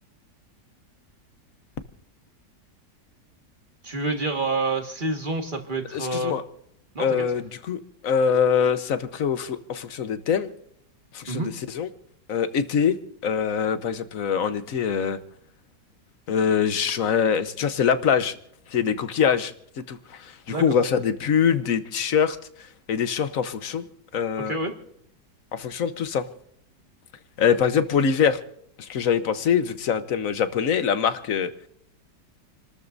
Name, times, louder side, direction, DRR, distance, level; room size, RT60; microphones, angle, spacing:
voice 1, 3.8-6.3 6.9-7.3 11.3-11.5 20.5-20.7 24.4-24.7, right 2 dB, 30° right, 4 dB, 1.9 m, -28 dB
voice 2, 5.9-6.4 7.0-10.5 11.1-11.9 12.3-13.0 13.2-15.2 16.3-18.3 18.7-19.5 19.9-20.0 20.5-22.4 22.9-23.8 24.1-24.5 25.5-26.2 27.4-28.4 28.8-31.5, left 7 dB, 55° left, 11 dB, 1.3 m, -23 dB
29.5 x 13.0 x 2.7 m, 0.70 s
omnidirectional pair, 1.8 m